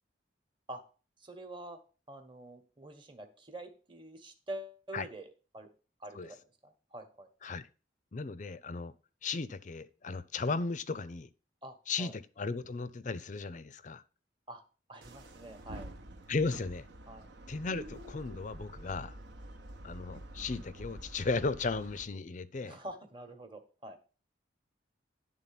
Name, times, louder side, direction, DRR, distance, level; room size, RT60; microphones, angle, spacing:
voice 1, 1.2-1.8 2.1-5.7 6.0-7.3 11.6-12.1 14.5-14.6 14.9-15.9 17.1-17.3 22.6-24.0, right 1 dB, 25° right, 1.1 m, -46 dB
voice 2, 8.1-8.9 9.2-11.3 11.9-14.0 16.3-16.8 17.5-19.1 19.8-22.8, left 4 dB, 40° left, 0.5 m, -35 dB
sound 1, 15.0-22.0, right 1 dB, 65° right, 0.9 m, -48 dB
10.5 x 3.8 x 5.8 m
head